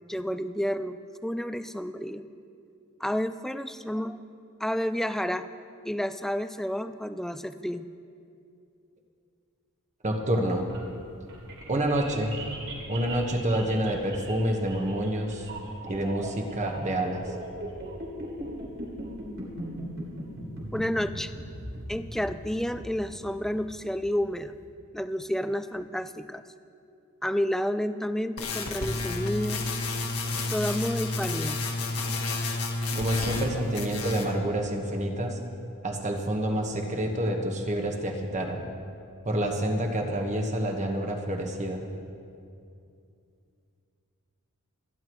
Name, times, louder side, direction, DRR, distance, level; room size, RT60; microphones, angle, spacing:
voice 1, 0.1-2.3 3.0-4.2 4.6-5.5 5.8-7.9 20.7-21.3 21.9-24.6 24.9-26.4 27.2-29.7 30.5-31.6, equal, ahead, 11 dB, 0.3 m, -30 dB
voice 2, 10.0-10.7 11.7-12.3 12.9-15.5 15.9-17.2 32.9-35.4 35.8-38.7 39.2-41.8, right 1 dB, 35° right, 2 dB, 1.4 m, -28 dB
sound 1, 10.5-24.6, right 1 dB, 60° right, 3.3 m, -40 dB
sound 2, 28.4-33.5 33.8-34.3, left 2 dB, 70° left, 1.8 m, -30 dB
29.5 x 10.5 x 3.1 m, 2.5 s
head